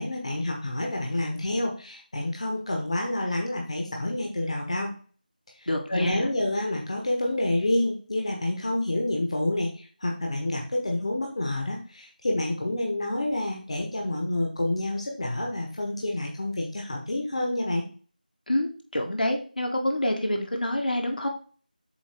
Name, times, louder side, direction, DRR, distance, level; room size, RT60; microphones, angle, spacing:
voice 1, 0.0-4.9 5.6-17.8, left 1 dB, 40° left, 0 dB, 1.2 m, -28 dB
voice 2, 5.7-6.3 18.5-21.3, left 1 dB, 65° left, 3 dB, 1.4 m, -27 dB
7.3 x 2.9 x 4.4 m, 0.40 s
figure-of-eight pair, 170°, 5 cm